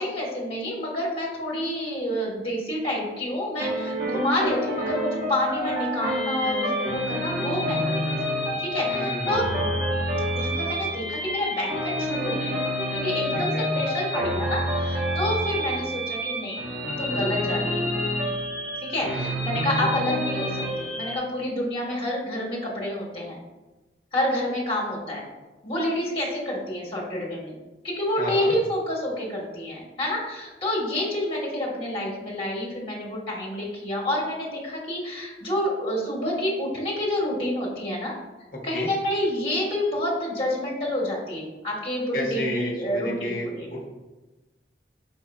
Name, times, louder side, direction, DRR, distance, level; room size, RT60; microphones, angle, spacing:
voice 1, 0.0-8.0 8.6-9.5 10.3-16.6 17.0-17.9 18.8-23.4 24.1-25.3 25.6-27.5 27.8-38.1 38.6-43.7, left 1 dB, 30° left, -5 dB, 1.2 m, -28 dB
sound 1, 3.6-21.2, equal, 50° right, 1.2 m, -28 dB
voice 2, 8.9-9.6 13.3-13.7 19.0-19.5 28.2-28.6 38.5-38.9 42.1-43.8, left 1 dB, 50° left, -1 dB, 0.8 m, -32 dB
4.6 x 4.3 x 2.3 m, 1.1 s
head